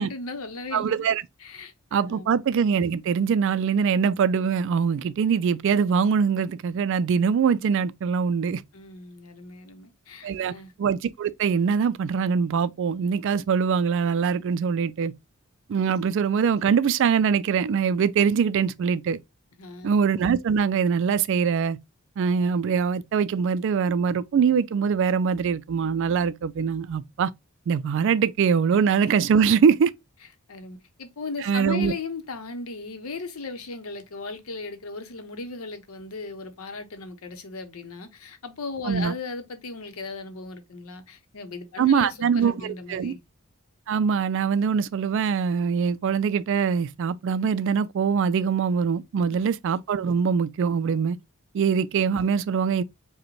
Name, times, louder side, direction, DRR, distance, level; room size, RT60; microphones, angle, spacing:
voice 1, 0.0-1.0 1.4-1.7 2.1-2.3 8.7-10.7 19.6-19.9 30.5-43.2 49.3-49.4, left 3 dB, 75° left, 0.7 m, -37 dB
voice 2, 0.7-1.2 1.9-8.6 10.2-10.5 10.8-15.1 15.7-19.2 19.8-21.8 22.2-27.3 27.7-29.9 31.4-31.9 38.9-39.1 41.8-43.1 43.9-51.2 51.5-52.8, right 6 dB, 55° right, 0.3 m, -23 dB
4.9 x 2.1 x 3.0 m
head